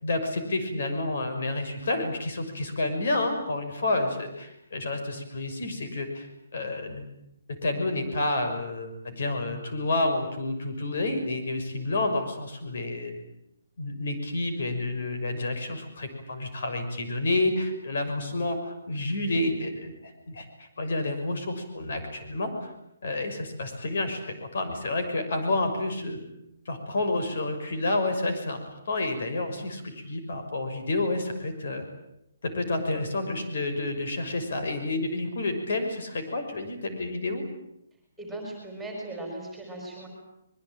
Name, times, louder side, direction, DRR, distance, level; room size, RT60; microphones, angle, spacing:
voice 1, 0.0-6.3 6.5-7.0 7.6-13.2 13.8-22.7 23.0-26.2 26.7-28.6 28.9-31.9 32.4-37.4, left 2 dB, 50° left, 7 dB, 6.1 m, -29 dB
voice 2, 38.2-40.1, right 2 dB, ahead, 0 dB, 4.9 m, -38 dB
25.5 x 22.0 x 9.2 m, 0.79 s
hypercardioid pair, 180°, 0 cm